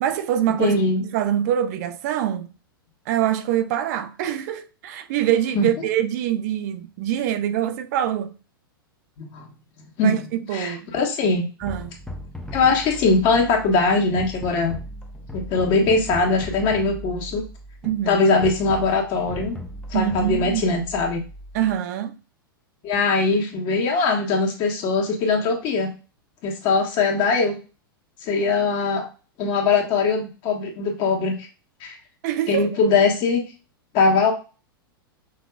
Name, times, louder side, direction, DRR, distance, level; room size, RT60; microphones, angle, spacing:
voice 1, 0.0-2.5 3.1-8.3 10.0-10.9 11.6-11.9 17.8-18.2 19.9-20.7 21.5-22.1 32.2-32.7, right 11 dB, 45° right, 0.4 m, -24 dB
voice 2, 0.6-1.0 5.5-5.7 9.2-9.5 10.0-10.2 10.5-11.4 12.5-14.8 15.3-17.4 18.1-19.5 19.9-21.2 22.8-25.9 26.4-27.5 28.2-29.0 29.4-31.3 31.8-32.0 32.5-33.4 33.9-34.3, left 4 dB, 40° left, 1.4 m, -21 dB
sound 1, 11.6-21.8, equal, 5° left, 0.8 m, -38 dB
6.2 x 2.9 x 2.3 m
figure-of-eight pair, 100°, 12 cm